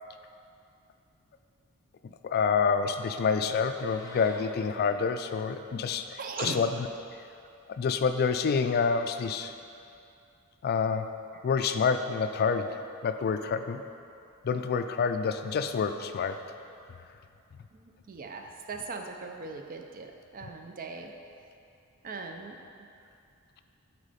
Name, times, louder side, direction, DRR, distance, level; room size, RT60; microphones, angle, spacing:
voice 1, 2.0-6.7 7.7-9.5 10.6-11.1 11.4-12.8 13.0-13.8 14.4-16.4, left 5 dB, 45° left, 9 dB, 0.3 m, -28 dB
Meow, 3.6-4.5, left 1 dB, 15° left, 0.8 m, -49 dB
voice 2, 6.2-6.7 17.7-21.2 22.0-22.9, right 4 dB, 40° right, 4 dB, 0.5 m, -40 dB
8.0 x 4.5 x 4.1 m, 2.5 s
head